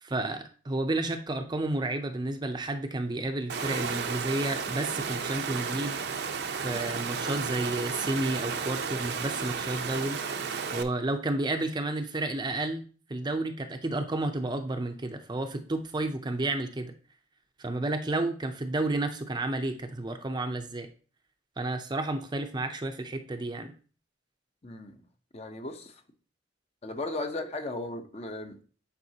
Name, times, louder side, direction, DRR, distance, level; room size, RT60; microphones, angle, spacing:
voice 1, 0.0-6.0 6.5-10.2 10.7-16.9 17.6-20.9 21.6-23.7, right 2 dB, 25° right, 0.6 m, -31 dB
Water, 3.5-10.8, right 5 dB, 65° right, 0.6 m, -33 dB
voice 2, 24.6-25.0 25.3-26.0 26.8-28.6, left 2 dB, 35° left, 0.8 m, -36 dB
9.3 x 4.8 x 2.8 m
head